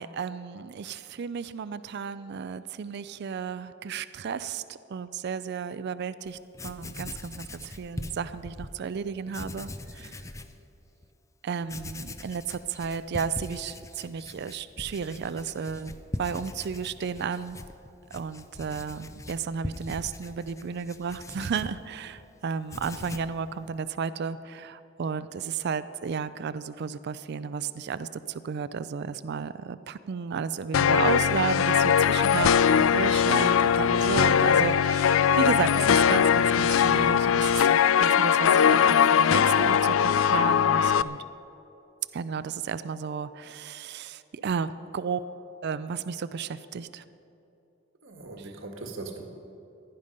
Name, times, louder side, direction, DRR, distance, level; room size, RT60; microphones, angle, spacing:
voice 1, 0.0-6.4 6.6-10.1 11.4-17.6 18.1-41.2 42.1-45.2 45.6-47.0, right 6 dB, 55° right, 14 dB, 0.4 m, -33 dB
Writing, 6.3-6.4 6.5-8.7 9.3-10.6 11.0-11.1 11.6-22.3 22.6-23.4, left 2 dB, 15° left, 0.5 m, -41 dB
sound 1, 30.7-41.0, left 8 dB, 85° left, 0.4 m, -21 dB
voice 2, 48.0-49.2, right 3 dB, 75° right, 3 dB, 1.6 m, -40 dB
16.0 x 11.0 x 5.2 m, 2.8 s
head